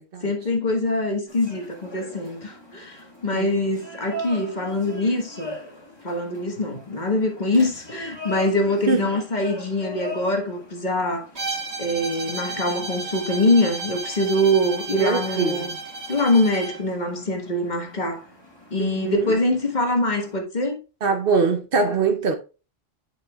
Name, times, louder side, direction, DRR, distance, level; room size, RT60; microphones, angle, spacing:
voice 1, 0.2-5.5 6.0-11.3 11.8-15.7 16.1-18.2 18.7-20.8, left 1 dB, 45° left, 1.5 m, -23 dB
sound 1, 1.3-20.4, left 1 dB, 25° left, 2.0 m, -41 dB
Bowed string instrument, 11.3-16.8, right 3 dB, 85° right, 2.1 m, -33 dB
voice 2, 15.0-15.8 18.8-19.3 21.0-22.4, right 4 dB, 60° right, 1.0 m, -23 dB
8.7 x 6.1 x 2.3 m
omnidirectional pair, 1.1 m